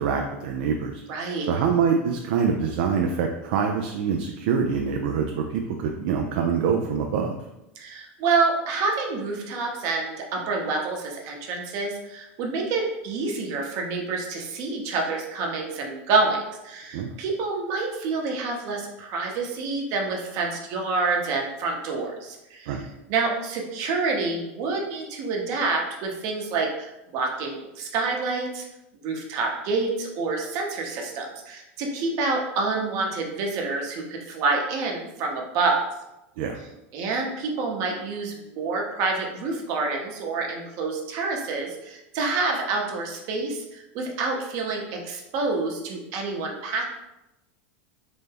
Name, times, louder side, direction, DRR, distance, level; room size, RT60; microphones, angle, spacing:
voice 1, 0.0-1.0 1.4-7.4 16.9-17.1 22.7-22.8 36.4-36.6, right 6 dB, 70° right, 2 dB, 0.4 m, -25 dB
voice 2, 1.1-1.5 7.8-22.8 23.1-28.6 29.0-35.8 36.9-46.8, right 3 dB, 55° right, 0 dB, 0.9 m, -27 dB
3.9 x 2.2 x 3.4 m, 0.92 s
hypercardioid pair, 110°, 7 cm